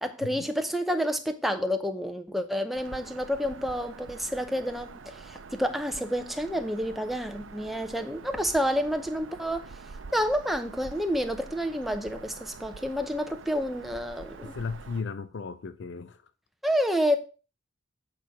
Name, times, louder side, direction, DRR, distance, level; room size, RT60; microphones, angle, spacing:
voice 1, 0.0-9.6 10.1-14.5 16.6-17.2, equal, ahead, 0.7 m, -29 dB
Bird vocalization bird call bird song, 2.7-15.0, right 4 dB, 80° right, 0.6 m, -46 dB
voice 2, 14.4-16.2, left 4 dB, 65° left, 0.5 m, -35 dB
8.3 x 4.2 x 6.0 m
head